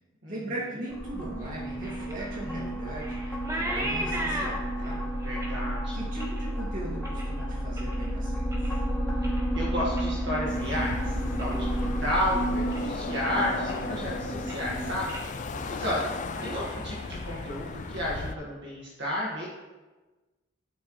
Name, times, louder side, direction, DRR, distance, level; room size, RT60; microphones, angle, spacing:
voice 1, 0.3-5.0 5.9-8.5 15.5-15.8, right 2 dB, 45° right, -5 dB, 2.4 m, -39 dB
sound 1, 0.9-14.9, right 1 dB, 10° left, 2.5 m, -31 dB
sound 2, 1.4-8.1 8.4-8.9 9.2-11.6 11.9-12.4 12.7-12.8 13.2-14.0 14.3-14.7 15.1-15.3 15.6-16.0 16.2-18.1, right 1 dB, 15° right, 1.5 m, -39 dB
voice 2, 5.2-6.0 9.2-15.1 15.7-19.5, left 1 dB, 65° right, -5 dB, 1.8 m, -32 dB
sound 3, 10.5-18.3, left 3 dB, 40° left, 0.4 m, -36 dB
12.0 x 7.8 x 3.2 m, 1.2 s
head